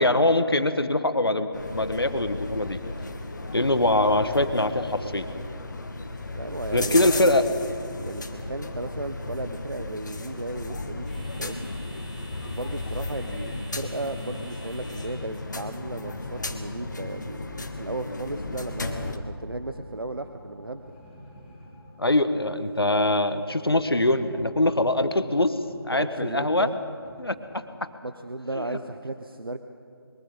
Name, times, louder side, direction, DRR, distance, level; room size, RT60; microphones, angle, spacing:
voice 1, 0.0-2.8 3.5-5.3 6.7-7.4 22.0-25.6 25.8-26.7 27.2-27.6 28.5-28.8, left 1 dB, 75° left, 10 dB, 1.5 m, -23 dB
sound 1, 1.5-19.2, left 2 dB, 50° left, 1.7 m, -35 dB
voice 2, 6.3-11.1 11.4-11.7 12.5-20.9 25.9-26.8 28.0-29.6, right 2 dB, 65° right, 8 dB, 1.0 m, -35 dB
sound 2, 7.9-17.2, right 1 dB, 20° right, 7.7 m, -52 dB
sound 3, 15.7-27.5, left 1 dB, 5° left, 5.1 m, -50 dB
24.0 x 22.5 x 5.4 m, 2.4 s
figure-of-eight pair, 160°, 13 cm